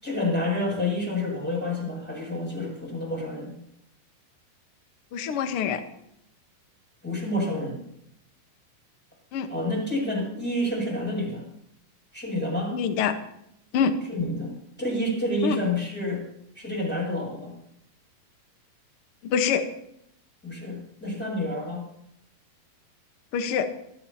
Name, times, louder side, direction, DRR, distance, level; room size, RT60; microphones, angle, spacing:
voice 1, 0.0-3.6 7.0-7.8 9.5-11.4 12.1-12.8 14.1-16.2 16.5-17.5 20.4-21.8, left 1 dB, 5° left, -3 dB, 6.9 m, -29 dB
voice 2, 5.1-5.8 9.3-9.5 12.7-13.1 13.7-13.9 15.4-15.6 19.2-19.6 23.3-23.7, left 7 dB, 65° left, 7 dB, 1.4 m, -25 dB
24.0 x 14.0 x 2.9 m, 0.76 s
omnidirectional pair, 4.3 m